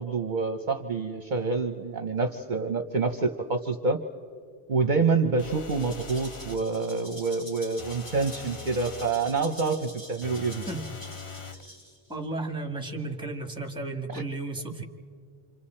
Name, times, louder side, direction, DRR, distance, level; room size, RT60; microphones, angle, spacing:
voice 1, 0.0-4.0 4.7-10.6 14.1-14.2, right 4 dB, 50° right, 6 dB, 0.8 m, -27 dB
sound 1, 5.4-6.7 7.8-9.2 10.2-11.7, left 4 dB, 35° left, 0.6 m, -42 dB
Rattle (instrument), 5.6-12.1, equal, 85° left, 6.9 m, -46 dB
voice 2, 12.1-14.9, right 2 dB, 5° right, 4 dB, 1.5 m, -34 dB
28.0 x 25.5 x 4.3 m, 2.2 s
omnidirectional pair, 1.1 m